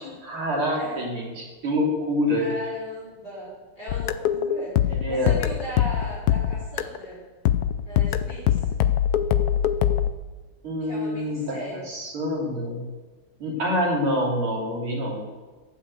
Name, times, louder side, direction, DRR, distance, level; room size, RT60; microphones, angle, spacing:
voice 1, 0.0-2.5 4.9-5.4 10.6-11.6 11.9-12.8 13.4-15.2, equal, 80° right, -2 dB, 4.0 m, -26 dB
voice 2, 0.7-1.0 2.3-7.2 7.8-8.7 10.8-11.9, left 1 dB, 50° left, -8 dB, 5.5 m, -37 dB
sound 1, 3.9-7.1 7.5-10.1, left 10 dB, 75° left, 0.9 m, -23 dB
16.5 x 6.8 x 8.2 m, 1.3 s
omnidirectional pair, 2.3 m